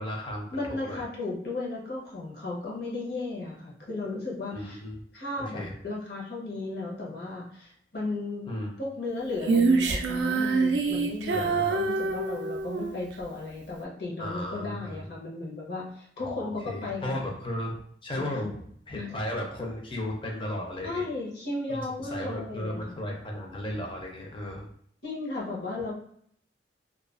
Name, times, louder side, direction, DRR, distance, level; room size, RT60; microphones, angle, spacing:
voice 1, 0.0-1.0 4.5-5.0 5.3-5.7 8.5-8.7 11.3-11.9 14.2-15.1 16.2-18.6 18.9-21.0 21.7-24.7, left 1 dB, 30° left, 1 dB, 0.5 m, -35 dB
voice 2, 0.5-4.8 5.1-8.5 8.8-17.3 18.2-18.5 18.9-19.1 20.8-23.0 25.0-25.9, left 2 dB, 65° left, -3 dB, 0.8 m, -35 dB
Female singing, 9.4-13.0, right 4 dB, 70° right, 0.3 m, -25 dB
2.3 x 2.3 x 2.4 m, 0.66 s
head